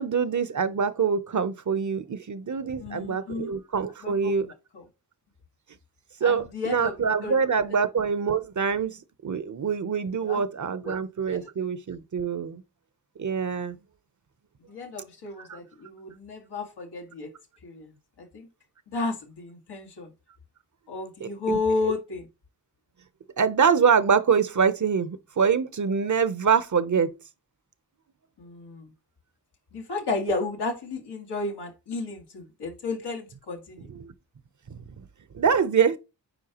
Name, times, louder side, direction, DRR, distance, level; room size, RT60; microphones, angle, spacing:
voice 1, 0.0-4.5 6.2-12.6 13.2-13.8 15.5-15.6 21.2-21.6 23.4-27.1 34.0-34.1 34.7-34.8 35.3-36.0, right 6 dB, 50° right, 0.8 m, -25 dB
voice 2, 2.8-3.5 4.0-4.8 6.2-7.4 10.2-10.4 10.8-11.0 11.3-11.5 14.6-17.3 17.6-18.5 18.9-20.1 20.9-22.3 28.4-28.9 29.7-33.9, left 3 dB, 85° left, 1.9 m, -33 dB
8.9 x 4.6 x 3.0 m
cardioid pair, 50°, 39 cm